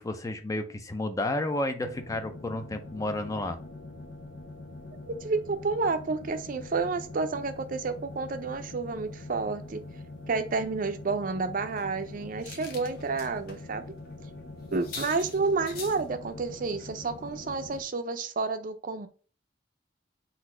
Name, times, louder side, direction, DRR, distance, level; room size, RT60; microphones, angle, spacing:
voice 1, 0.0-3.6, left 1 dB, 20° left, 8 dB, 0.4 m, -31 dB
sound 1, 1.8-17.8, left 2 dB, 85° left, 0.8 m, -44 dB
voice 2, 5.1-9.8 10.3-13.8 14.7-19.1, right 4 dB, 45° right, 9 dB, 0.5 m, -30 dB
sound 2, 11.7-13.6 14.0-14.1 14.4-14.5 14.7-16.0 16.8-17.0 17.3-17.5 17.7-17.8, left 4 dB, 55° left, 0.9 m, -45 dB
4.1 x 2.6 x 4.3 m, 0.38 s
head